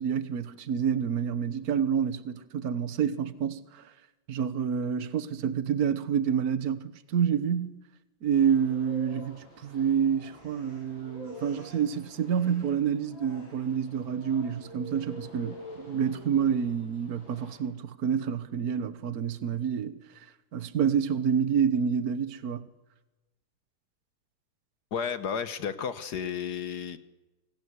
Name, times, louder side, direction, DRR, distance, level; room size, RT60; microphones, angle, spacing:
voice 1, 0.0-3.8 4.3-7.8 8.2-20.0 20.5-22.6, right 7 dB, 50° right, 1.6 m, -28 dB
sound 1, 8.3-17.6, equal, 75° left, 7.7 m, -47 dB
voice 2, 24.9-27.0, left 7 dB, 60° left, 1.5 m, -32 dB
26.5 x 18.0 x 8.1 m
omnidirectional pair, 2.2 m